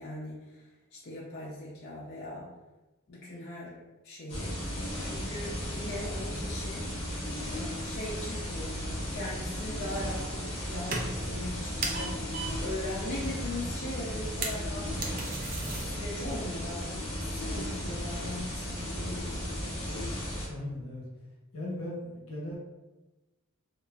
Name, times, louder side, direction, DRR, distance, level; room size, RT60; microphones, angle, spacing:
voice 1, 0.0-2.5 3.1-4.6 5.0-6.9 7.5-15.0 15.8-19.5, left 1 dB, 45° left, -7 dB, 0.5 m, -40 dB
sound 1, 4.3-20.5, equal, 25° left, 0.8 m, -35 dB
sound 2, 9.8-10.6 10.8-11.4 11.8-12.7 13.0-13.1 13.3-13.4 13.6-13.7 14.1-15.8, right 3 dB, 40° right, 0.4 m, -36 dB
voice 2, 20.5-21.0 21.5-22.6, left 1 dB, 70° left, -4 dB, 0.9 m, -37 dB
2.9 x 2.4 x 2.3 m, 1.1 s
head